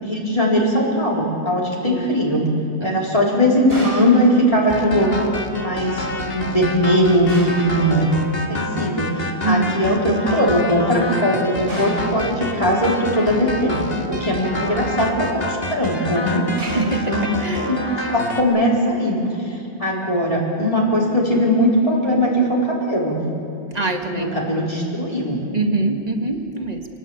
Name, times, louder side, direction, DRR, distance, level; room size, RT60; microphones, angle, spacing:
voice 1, 0.0-2.4 2.8-5.1 5.5-8.1 8.5-13.8 14.1-17.2 17.7-17.8 18.1-23.2 24.1-25.4, equal, 30° left, -4 dB, 4.6 m, -20 dB
sound 1, 3.7-4.2 7.3-7.8 11.7-12.2 16.6-17.0, right 1 dB, 60° right, 4.6 m, -33 dB
sound 2, 4.7-18.4, left 1 dB, 65° left, 2.2 m, -28 dB
voice 2, 9.4-9.8 16.6-17.7 23.7-24.3 25.5-26.9, right 3 dB, 40° right, 3 dB, 2.2 m, -24 dB
28.0 x 19.0 x 8.9 m, 2.6 s
omnidirectional pair, 1.1 m